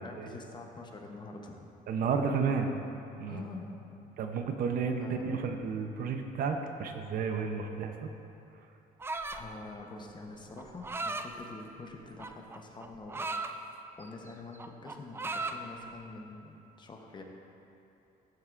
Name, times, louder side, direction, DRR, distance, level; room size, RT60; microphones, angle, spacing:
voice 1, 0.0-1.7 3.3-3.8 5.0-5.4 9.3-13.3 14.0-17.2, left 3 dB, 30° left, 2 dB, 0.9 m, -46 dB
voice 2, 1.9-2.8 3.2-3.4 4.2-8.1, right 5 dB, 60° right, 5 dB, 0.7 m, -32 dB
sound 1, 9.0-9.5 10.6-11.3 12.2-13.5 14.0-14.3 14.5-15.6, right 3 dB, 15° right, 0.3 m, -36 dB
14.0 x 7.8 x 2.5 m, 2.8 s
cardioid pair, 120°, 16 cm